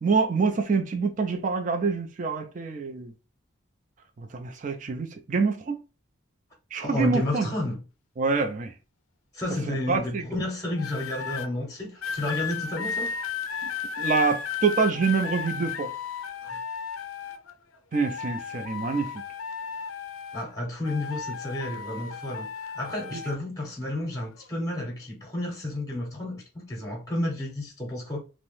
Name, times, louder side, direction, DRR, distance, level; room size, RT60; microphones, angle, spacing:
voice 1, 0.0-3.1 4.2-5.8 6.7-7.5 8.2-8.7 9.7-10.2 13.6-13.7 14.0-15.9 17.9-19.1, right 4 dB, 40° right, 0.3 m, -26 dB
voice 2, 6.8-7.8 9.3-13.1 16.4-16.6 20.3-28.2, left 1 dB, 15° left, 0.7 m, -31 dB
sound 1, 10.8-11.5 12.0-17.5 17.9-20.5 20.8-23.4 24.1-24.4, left 7 dB, 80° left, 0.4 m, -34 dB
2.7 x 2.0 x 3.1 m
head